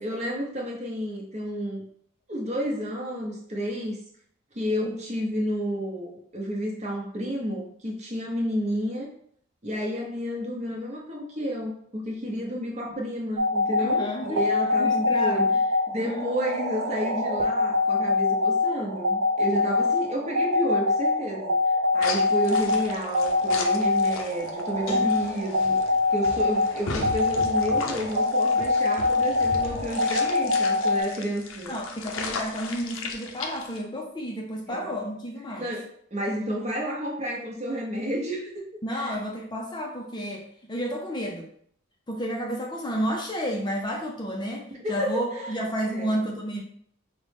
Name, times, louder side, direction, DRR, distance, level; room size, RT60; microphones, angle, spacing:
voice 1, 0.0-1.8 2.3-4.0 4.5-9.1 9.6-15.5 15.9-21.6 21.9-25.8 26.1-31.8 34.7-34.9 35.6-38.5 38.9-39.2 44.7-46.2, equal, 35° right, -2 dB, 0.8 m, -31 dB
sound 1, 13.4-31.0, left 3 dB, 85° right, 0.7 m, -24 dB
voice 2, 13.8-14.4 14.8-15.6 16.0-16.3 24.9-25.3 31.0-31.1 31.7-35.7 38.8-41.5 42.1-46.6, equal, 20° left, 0 dB, 0.4 m, -31 dB
sound 2, 22.0-33.8, left 4 dB, 70° left, 0.5 m, -36 dB
5.1 x 2.1 x 3.3 m, 0.64 s
head